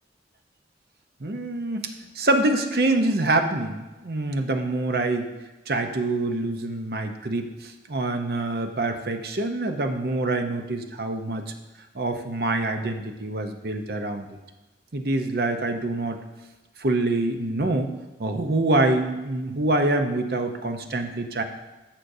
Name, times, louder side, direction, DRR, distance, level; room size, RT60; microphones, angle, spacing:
voice 1, 1.2-1.9 2.1-5.3 5.7-11.4 11.9-14.3 14.9-16.2 16.8-17.9 18.2-21.4, right 2 dB, 60° right, 6 dB, 0.8 m, -25 dB
11.5 x 7.5 x 2.7 m, 1.1 s
head